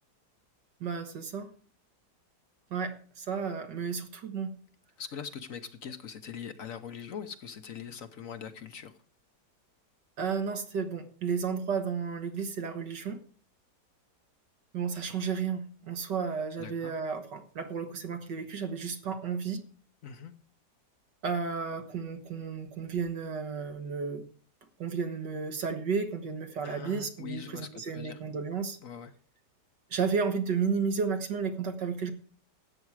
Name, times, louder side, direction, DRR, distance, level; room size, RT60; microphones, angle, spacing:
voice 1, 0.8-1.5 2.7-4.5 10.2-13.2 14.7-19.6 21.2-24.2 24.8-28.8 29.9-32.1, right 5 dB, 75° right, 7 dB, 2.1 m, -32 dB
voice 2, 5.0-8.9 16.6-16.9 20.0-20.3 26.6-28.2 28.8-29.1, left 7 dB, 55° left, 10 dB, 1.1 m, -42 dB
13.0 x 8.8 x 4.7 m, 0.43 s
omnidirectional pair, 1.9 m